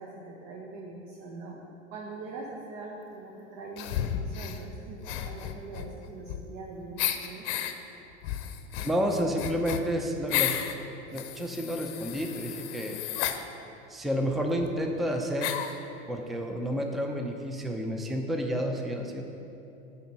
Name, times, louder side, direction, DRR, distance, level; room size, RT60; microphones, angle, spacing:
voice 1, 0.0-1.6 1.9-7.5, right 3 dB, 50° right, -1 dB, 1.2 m, -42 dB
sound 1, 3.8-4.6 5.0-6.6 7.0-7.7 8.2-10.8 11.1-13.4 14.3-14.4 14.6-14.7 15.4-15.8, left 11 dB, 55° left, 0.7 m, -33 dB
voice 2, 8.8-10.8 11.1-13.0 13.9-15.6 16.1-19.2, equal, ahead, 3 dB, 0.5 m, -30 dB
9.3 x 4.1 x 5.4 m, 2.9 s
hypercardioid pair, 95°, 36 cm